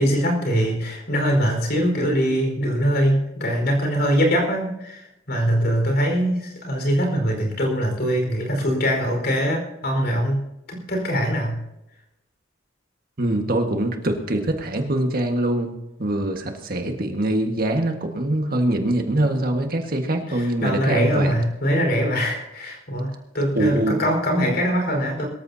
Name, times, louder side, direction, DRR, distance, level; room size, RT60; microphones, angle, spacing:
voice 1, 0.0-10.4 10.7-11.6 20.3-25.3, equal, 60° left, 2 dB, 4.8 m, -22 dB
voice 2, 13.2-15.7 16.0-21.4 23.5-24.0, right 1 dB, 50° right, 3 dB, 1.7 m, -23 dB
23.0 x 14.0 x 2.8 m, 0.93 s
head